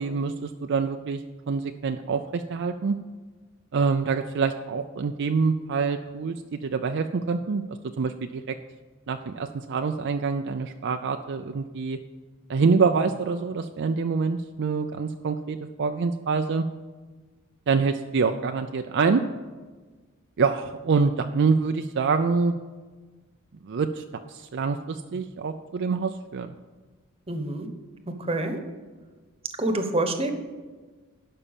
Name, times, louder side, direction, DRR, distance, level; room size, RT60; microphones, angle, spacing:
voice 1, 0.0-3.0 3.7-8.6 9.1-12.0 12.5-16.7 17.7-19.2 20.4-22.5 23.6-26.5, right 5 dB, 60° right, 6 dB, 0.4 m, -26 dB
voice 2, 27.3-27.7 28.2-28.6 29.6-30.3, right 2 dB, 30° right, 6 dB, 1.1 m, -26 dB
12.0 x 5.5 x 7.2 m, 1.3 s
head